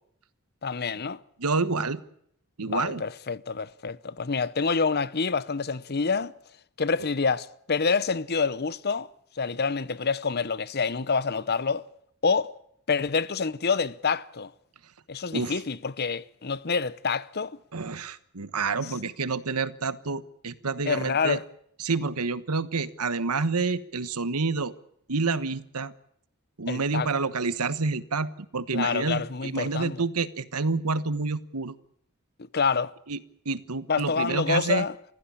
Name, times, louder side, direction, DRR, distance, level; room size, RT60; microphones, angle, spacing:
voice 1, 0.6-1.2 2.6-6.3 6.8-9.1 9.4-11.8 12.2-12.5 12.9-14.5 15.1-17.6 20.9-21.4 26.7-27.1 28.7-30.0 32.5-32.9 33.9-34.9, left 5 dB, 45° left, 0.8 m, -27 dB
voice 2, 1.4-2.0 2.6-3.0 15.3-15.6 17.7-21.4 21.8-24.7 25.1-25.9 26.6-31.8 33.1-34.9, right 4 dB, 85° right, 1.3 m, -28 dB
26.0 x 15.5 x 8.6 m
head